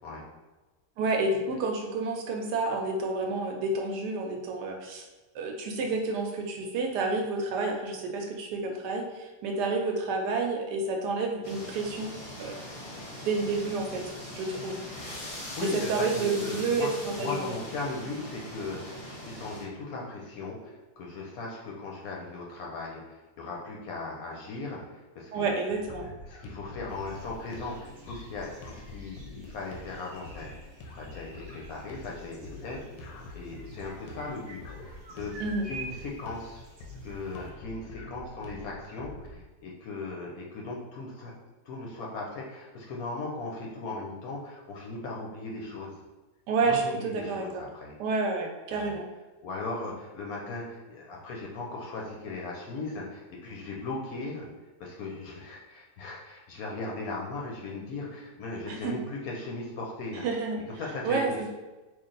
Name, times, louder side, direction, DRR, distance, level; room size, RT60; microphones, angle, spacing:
voice 1, 1.0-5.1 5.3-12.1 12.4-12.5 13.2-14.0 14.3-15.0 15.6-17.5 25.3-26.1 35.4-35.7 46.5-47.5 48.0-49.1 58.7-59.0 60.1-60.6 61.0-61.5, right 3 dB, 75° right, 2 dB, 1.2 m, -29 dB
sound 1, 11.4-19.6, left 1 dB, 40° left, 0.5 m, -41 dB
voice 2, 15.6-25.5 25.9-32.8 33.3-35.4 35.7-36.6 37.0-41.3 41.6-45.9 46.6-47.9 48.7-49.0 49.4-54.5 54.8-60.2 60.8-61.5, left 3 dB, 65° left, -2 dB, 1.0 m, -38 dB
sound 2, 25.7-39.4, left 2 dB, 85° left, 1.2 m, -46 dB
sound 3, 26.9-37.5, right 2 dB, 55° right, 0.9 m, -49 dB
3.1 x 2.6 x 3.8 m, 1.2 s
omnidirectional pair, 1.9 m